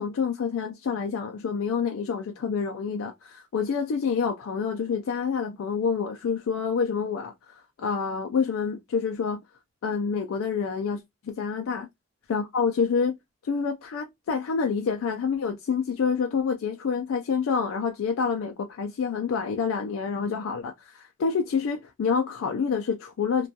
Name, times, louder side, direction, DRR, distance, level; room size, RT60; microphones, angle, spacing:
voice 1, 0.0-7.3 7.8-9.4 9.8-11.9 12.3-13.1 13.4-23.5, left 6 dB, 80° left, 0.3 m, -27 dB
2.2 x 2.2 x 2.6 m
head